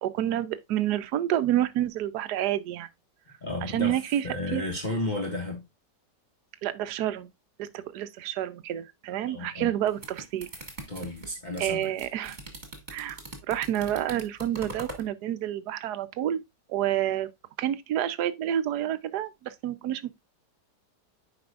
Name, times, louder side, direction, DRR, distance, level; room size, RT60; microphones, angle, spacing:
voice 1, 0.0-2.9 3.6-4.2 4.5-4.6 6.6-7.3 7.6-10.5 11.6-12.4 12.9-13.2 13.5-16.4 16.7-17.3 17.6-20.2, right 12 dB, 70° right, 1.3 m, -29 dB
voice 2, 3.4-5.6 9.3-9.7 10.9-11.9, left 2 dB, 25° left, 1.7 m, -33 dB
sound 1, 9.7-15.1, right 2 dB, 25° right, 2.1 m, -42 dB
9.5 x 5.2 x 2.4 m
omnidirectional pair, 1.9 m